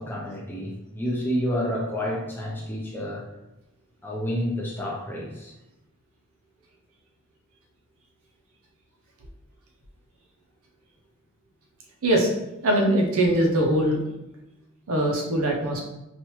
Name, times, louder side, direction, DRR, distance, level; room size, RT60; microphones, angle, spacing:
voice 1, 0.0-3.2 4.0-5.5, equal, 10° left, -3 dB, 0.5 m, -29 dB
voice 2, 12.6-14.0 14.9-15.8, right 1 dB, 80° right, 0 dB, 0.6 m, -21 dB
3.1 x 2.4 x 2.9 m, 0.92 s
head